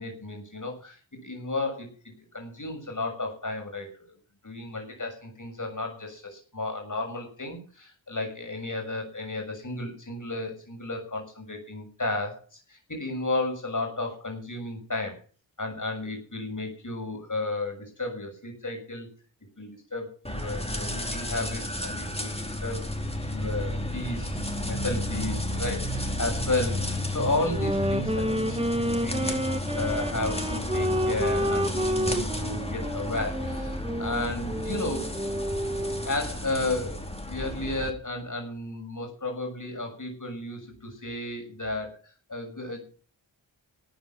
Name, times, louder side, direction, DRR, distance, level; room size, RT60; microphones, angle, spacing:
voice 1, 0.0-4.1 4.4-15.2 15.6-19.1 19.6-22.8 23.3-29.4 29.7-35.1 35.9-42.9, left 2 dB, 40° left, 3 dB, 6.8 m, -33 dB
sound 1, 20.3-37.9, left 1 dB, 15° left, 4.3 m, -32 dB
Wind instrument woodwind instrument, 27.5-36.1, equal, 10° right, 1.8 m, -30 dB
14.5 x 9.4 x 7.5 m, 0.40 s
cardioid pair, 40°, 46 cm